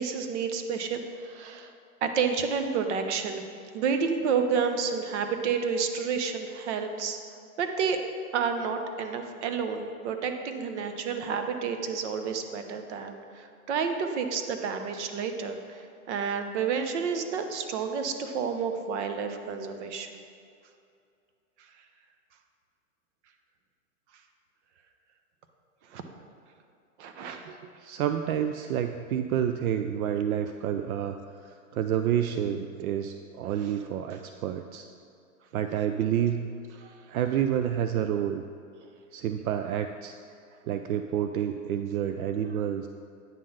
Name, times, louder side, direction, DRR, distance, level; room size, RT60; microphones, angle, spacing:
voice 1, 0.0-1.7 2.0-3.4 3.7-7.2 7.6-8.0 8.3-20.2 25.9-26.0 27.0-27.6 36.8-37.0, right 6 dB, 55° right, 6 dB, 0.9 m, -30 dB
voice 2, 27.5-31.2 31.5-34.9 35.5-36.5 37.1-38.4 39.1-40.2 40.7-42.9, right 9 dB, 75° right, 8 dB, 0.5 m, -29 dB
9.2 x 3.8 x 6.4 m, 2.4 s
hypercardioid pair, 145°, 43 cm